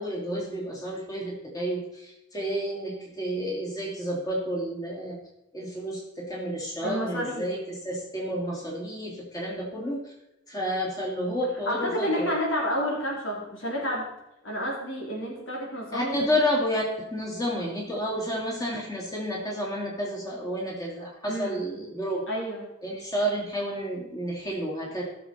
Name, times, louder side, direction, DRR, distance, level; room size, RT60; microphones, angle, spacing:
voice 1, 0.0-5.2 5.5-10.0 10.5-12.3 15.9-22.2 22.8-25.0, equal, 20° left, -3 dB, 2.9 m, -30 dB
voice 2, 6.8-7.5 11.6-14.1 14.4-16.3 21.3-21.6 22.3-22.7, equal, 80° left, -2 dB, 3.5 m, -30 dB
16.0 x 6.8 x 4.5 m, 0.87 s
head